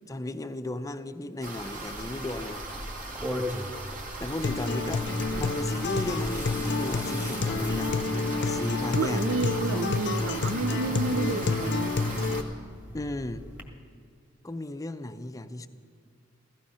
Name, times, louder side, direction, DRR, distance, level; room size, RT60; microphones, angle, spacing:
voice 1, 0.1-2.6 4.2-5.1 5.4-7.9 8.4-9.9 12.9-13.5 14.4-15.7, left 1 dB, 15° left, 10 dB, 0.6 m, -35 dB
sound 1, 1.4-12.4, right 2 dB, 45° right, 1.9 m, -38 dB
sound 2, 2.3-13.6, equal, 10° right, 1.6 m, -41 dB
Acoustic guitar, 4.4-12.4, left 3 dB, 60° left, 0.6 m, -29 dB
voice 2, 8.9-12.0, right 3 dB, 65° right, 10 dB, 0.5 m, -30 dB
15.5 x 15.0 x 5.6 m, 2.3 s
head